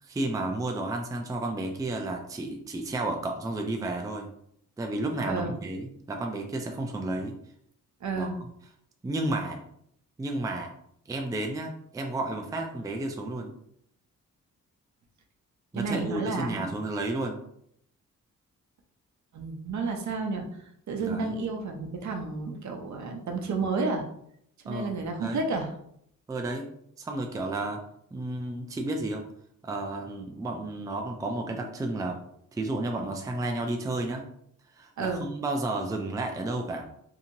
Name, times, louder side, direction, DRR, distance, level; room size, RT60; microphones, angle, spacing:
voice 1, 0.0-4.3 4.8-7.4 8.1-8.5 9.0-9.6 10.2-10.7 11.1-13.5 15.7-17.4 21.0-21.4 24.7-25.5 26.3-26.7 27.0-27.8 28.1-29.2 29.6-32.2 32.5-34.2 34.7-36.9, right 2 dB, 10° right, 3 dB, 0.4 m, -32 dB
voice 2, 8.0-8.4 15.7-16.7 19.3-20.5 20.9-24.0 24.6-25.7 35.0-35.3, right 4 dB, 60° right, 3 dB, 0.7 m, -31 dB
2.8 x 2.7 x 2.6 m, 0.70 s
cardioid pair, 80°, 32 cm